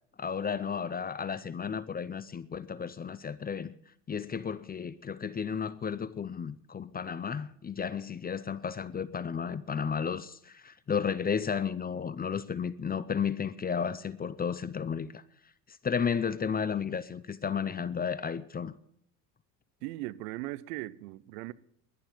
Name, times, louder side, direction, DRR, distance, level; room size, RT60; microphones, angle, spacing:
voice 1, 0.2-3.8 4.1-15.2 15.7-18.7, left 6 dB, 20° left, 0.6 m, -33 dB
voice 2, 19.8-21.5, right 18 dB, 65° right, 0.8 m, -38 dB
11.5 x 10.5 x 8.6 m
hypercardioid pair, 75°, 50 cm